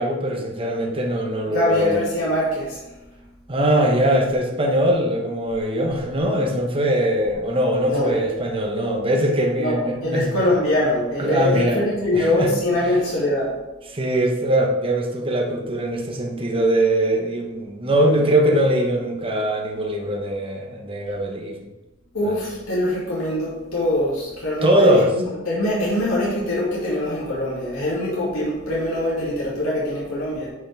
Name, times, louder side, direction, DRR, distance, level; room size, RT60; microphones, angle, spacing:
voice 1, 0.0-2.0 3.5-10.3 11.2-11.8 12.1-12.5 13.9-21.6 22.2-22.4 24.6-25.1, right 1 dB, 25° right, 0 dB, 1.1 m, -21 dB
voice 2, 1.5-2.8 7.9-8.2 9.6-13.5 22.1-30.5, left 1 dB, 85° left, -7 dB, 2.5 m, -23 dB
9.5 x 5.7 x 3.5 m, 1.0 s
head